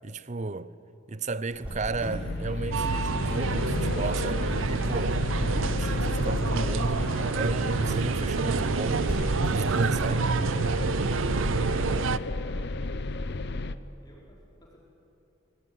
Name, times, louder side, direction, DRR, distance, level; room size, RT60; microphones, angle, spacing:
voice 1, 0.0-0.7 1.1-10.3, right 3 dB, 35° right, 0.6 m, -34 dB
Cricket, 1.5-13.0, equal, 5° right, 6.3 m, -42 dB
sound 1, 1.9-13.7, left 2 dB, 55° left, 0.8 m, -32 dB
sound 2, 2.7-12.2, right 4 dB, 80° right, 0.6 m, -28 dB
voice 2, 12.4-14.8, equal, 20° left, 5.0 m, -57 dB
25.0 x 18.5 x 9.5 m
head